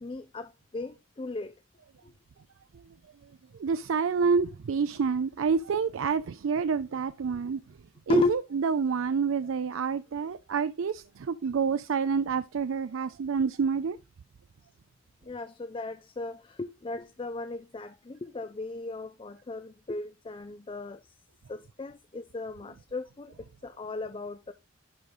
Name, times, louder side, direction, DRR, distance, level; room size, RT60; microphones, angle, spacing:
voice 1, 0.0-1.6 2.0-2.1 8.1-8.3 15.2-21.1 21.5-24.5, left 2 dB, 25° left, 0.4 m, -35 dB
voice 2, 3.6-7.6 8.1-14.0, right 5 dB, 65° right, 0.4 m, -28 dB
11.0 x 3.8 x 4.9 m
head